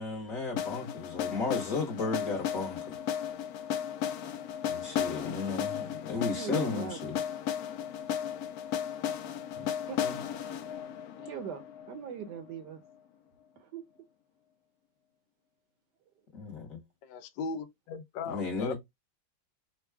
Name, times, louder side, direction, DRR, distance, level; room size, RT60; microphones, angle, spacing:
voice 1, 0.0-2.8 4.6-7.2 9.5-9.7 10.0-10.2 16.3-16.8 18.3-18.7, left 4 dB, 50° left, 1.3 m, -34 dB
sound 1, 0.6-12.5, left 9 dB, 90° left, 0.8 m, -35 dB
voice 2, 6.1-7.0 9.9-10.0 11.2-12.8 13.6-13.8, right 7 dB, 65° right, 1.2 m, -40 dB
voice 3, 17.0-18.7, left 4 dB, 75° left, 1.3 m, -38 dB
5.3 x 2.3 x 3.3 m
omnidirectional pair, 2.2 m